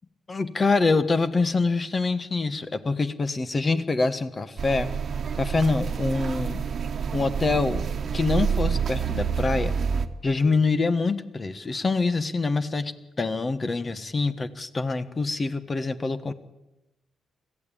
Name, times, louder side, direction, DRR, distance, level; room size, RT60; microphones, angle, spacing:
voice 1, 0.3-4.9 5.4-6.7 7.1-7.9 8.1-9.7 10.2-12.9 13.2-16.3, left 3 dB, 35° left, 11 dB, 1.4 m, -25 dB
sound 1, 4.6-10.1, right 6 dB, 55° right, 1.3 m, -28 dB
22.0 x 14.5 x 8.6 m, 0.97 s
cardioid pair, 75°, 0 cm